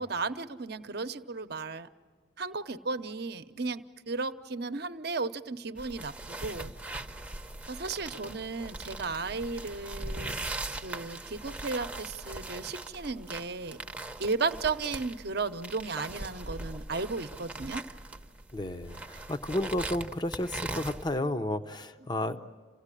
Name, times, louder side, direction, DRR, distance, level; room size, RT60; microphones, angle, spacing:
voice 1, 0.0-1.9 2.4-6.7 7.7-10.4 10.8-13.8 14.2-17.8 22.3-22.4, right 4 dB, 55° right, 10 dB, 0.9 m, -34 dB
sound 1, 5.8-21.2, right 2 dB, 5° right, 0.8 m, -40 dB
voice 2, 18.5-22.4, left 1 dB, 20° left, 10 dB, 0.7 m, -32 dB
28.5 x 17.0 x 9.9 m, 1.5 s
head